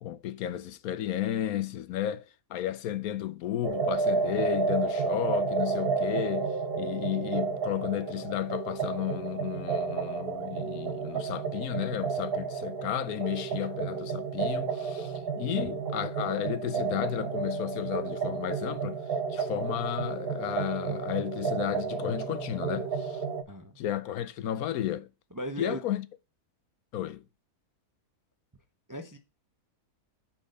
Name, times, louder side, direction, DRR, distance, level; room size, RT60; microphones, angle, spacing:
voice 1, 0.0-19.0 19.3-23.2 23.8-25.1 25.6-26.1 26.9-27.2, left 12 dB, 70° left, 1.0 m, -33 dB
sound 1, 3.6-23.4, right 5 dB, 45° right, 1.2 m, -31 dB
voice 2, 23.5-23.8 25.3-25.8 28.9-29.2, equal, 20° right, 0.6 m, -37 dB
8.2 x 4.5 x 6.5 m
omnidirectional pair, 1.6 m